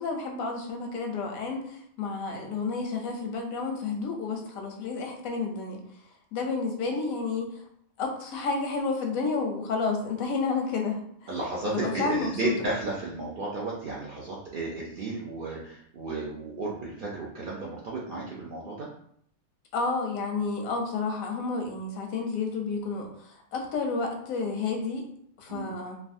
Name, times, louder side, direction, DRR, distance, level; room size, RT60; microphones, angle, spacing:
voice 1, 0.0-5.8 6.3-7.6 8.0-11.0 11.7-12.5 19.7-25.0 25.4-26.0, left 4 dB, 90° left, 2 dB, 1.1 m, -30 dB
voice 2, 11.3-18.9 25.5-25.7, right 2 dB, 65° right, -5 dB, 0.5 m, -33 dB
3.3 x 2.2 x 2.5 m, 0.67 s
omnidirectional pair, 1.4 m